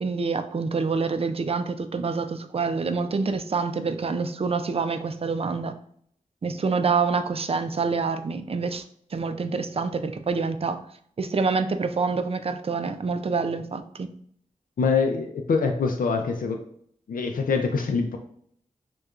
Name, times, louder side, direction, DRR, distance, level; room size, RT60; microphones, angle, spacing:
voice 1, 0.0-5.8 6.4-8.8 9.1-10.8 11.2-14.1, right 4 dB, 45° right, 9 dB, 0.4 m, -26 dB
voice 2, 14.8-16.6 17.1-18.2, left 5 dB, 85° left, 3 dB, 0.5 m, -24 dB
6.4 x 2.3 x 2.4 m, 0.64 s
cardioid pair, 60°, 14 cm